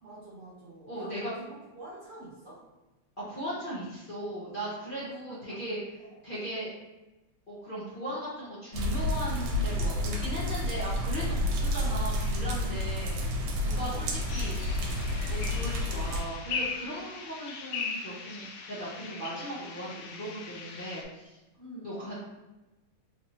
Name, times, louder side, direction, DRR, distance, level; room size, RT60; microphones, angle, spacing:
voice 1, 0.0-1.3 1.7-2.6 5.0-5.6 6.1-6.2 13.8-14.6 21.6-22.0, right 2 dB, 75° right, -7 dB, 0.5 m, -47 dB
voice 2, 0.9-1.3 3.2-5.8 6.2-6.7 7.5-13.2 13.6-14.6 15.3-21.4 21.8-22.2, right 1 dB, 45° left, -10 dB, 0.7 m, -38 dB
sound 1, 8.7-16.2, left 1 dB, 90° right, 1.6 m, -30 dB
sound 2, 14.3-21.0, left 5 dB, 85° left, 1.6 m, -39 dB
4.0 x 2.9 x 2.7 m, 1.1 s
omnidirectional pair, 2.4 m